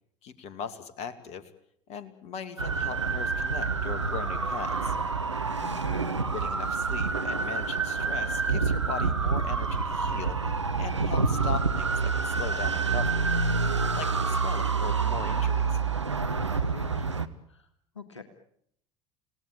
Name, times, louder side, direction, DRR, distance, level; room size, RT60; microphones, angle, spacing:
voice 1, 0.2-1.5 1.9-5.0 6.3-10.4 10.8-13.3 13.9-15.8, left 7 dB, 50° left, 12 dB, 2.4 m, -39 dB
sound 1, 2.6-17.3, right 4 dB, 85° right, 1.1 m, -27 dB
voice 2, 5.6-6.1 16.5-17.1 17.5-17.7 18.0-18.2, left 4 dB, 85° left, 9 dB, 1.9 m, -45 dB
29.0 x 18.0 x 8.9 m, 0.71 s
figure-of-eight pair, 65°, 15 cm